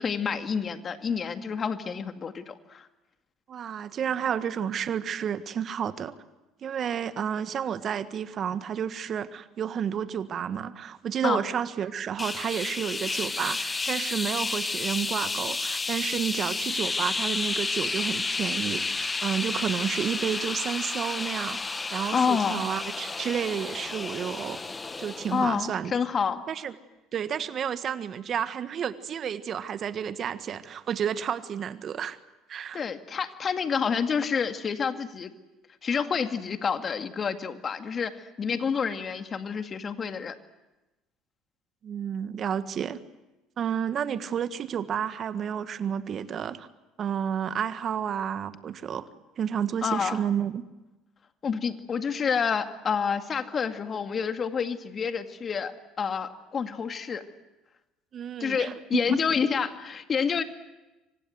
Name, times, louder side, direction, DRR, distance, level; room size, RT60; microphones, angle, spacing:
voice 1, 0.0-2.9 11.2-11.4 22.1-22.7 25.3-26.4 32.7-35.3 35.8-40.3 49.8-50.2 51.4-55.7 56.0-57.2 58.4-60.4, left 6 dB, 40° left, 8 dB, 2.1 m, -28 dB
voice 2, 3.5-6.1 6.6-24.6 25.0-25.9 26.5-26.7 27.1-32.2 32.5-32.8 41.8-43.0 43.6-46.7 47.0-49.1 49.4-50.6 58.1-59.2, right 8 dB, 45° right, 13 dB, 1.4 m, -31 dB
sound 1, 12.2-25.5, left 3 dB, 20° left, 1.2 m, -31 dB
28.0 x 25.0 x 7.8 m, 1.0 s
hypercardioid pair, 65°, 0 cm